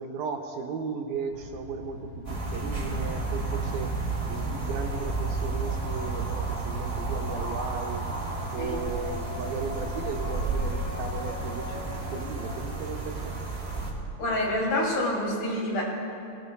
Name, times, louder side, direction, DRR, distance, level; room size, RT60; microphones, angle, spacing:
voice 1, 0.0-8.0 8.5-11.8 12.1-13.4, right 5 dB, 75° right, 2 dB, 2.3 m, -36 dB
sound 1, 1.3-12.8, left 2 dB, 55° left, 3.3 m, -41 dB
sound 2, 2.2-13.9, right 3 dB, 25° right, 1.9 m, -32 dB
voice 2, 14.2-15.8, left 1 dB, 80° left, -3 dB, 4.8 m, -27 dB
21.0 x 18.5 x 2.3 m, 2.5 s
omnidirectional pair, 4.6 m